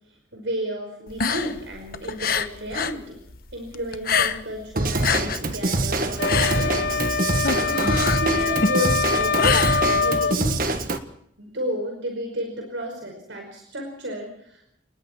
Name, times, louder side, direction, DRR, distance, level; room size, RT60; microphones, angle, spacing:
voice 1, 0.1-3.2 3.5-7.0 7.4-10.8 11.4-14.6, equal, 80° right, 2 dB, 5.4 m, -32 dB
sound 1, 1.1-3.0 3.3-4.6 4.9-10.3, left 5 dB, 50° left, 1.0 m, -26 dB
Drum kit / Drum, 4.8-11.0, right 2 dB, 50° right, 1.7 m, -25 dB
sound 2, 6.2-10.4, left 5 dB, 80° left, 1.9 m, -24 dB
28.5 x 21.0 x 4.6 m, 0.72 s
head